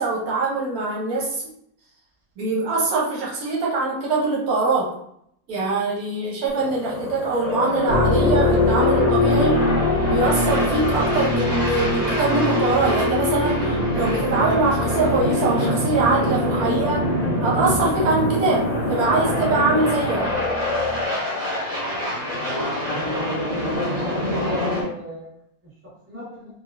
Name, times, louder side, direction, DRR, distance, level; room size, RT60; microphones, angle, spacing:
voice 1, 0.0-1.4 2.4-4.9 5.5-9.7 10.1-17.1 17.4-20.3, right 3 dB, 85° right, -3 dB, 1.3 m, -23 dB
sound 1, 6.5-24.8, left 1 dB, 30° right, 1.3 m, -25 dB
sound 2, 7.9-21.0, left 2 dB, 65° right, 1.8 m, -25 dB
voice 2, 22.9-23.2 23.9-25.3 26.1-26.4, equal, 10° right, -9 dB, 1.3 m, -35 dB
3.5 x 2.3 x 2.4 m, 0.72 s
omnidirectional pair, 1.5 m